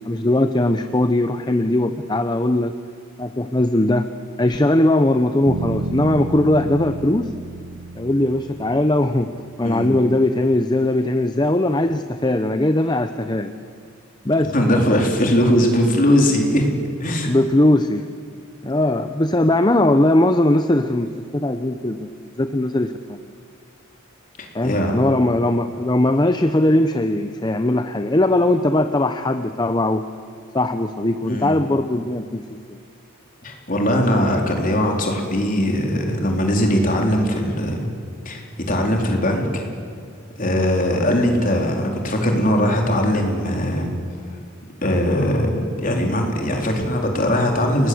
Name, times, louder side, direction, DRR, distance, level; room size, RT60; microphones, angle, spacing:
voice 1, 0.1-2.7 3.2-4.1 4.4-7.3 8.0-9.3 9.6-13.5 14.2-14.5 17.3-18.1 18.6-23.2 24.5-30.0 30.5-32.4 32.7-32.8, left 1 dB, 20° left, 8 dB, 0.7 m, -19 dB
sound 1, 5.5-9.6, right 3 dB, 85° right, 0.7 m, -31 dB
voice 2, 9.6-10.0 14.5-16.7 17.0-17.3 24.4-24.9 31.2-31.6 33.4-37.9 38.3-39.6 40.4-43.9 44.8-47.9, equal, 40° left, 1 dB, 3.9 m, -20 dB
29.5 x 20.0 x 7.9 m, 2.3 s
head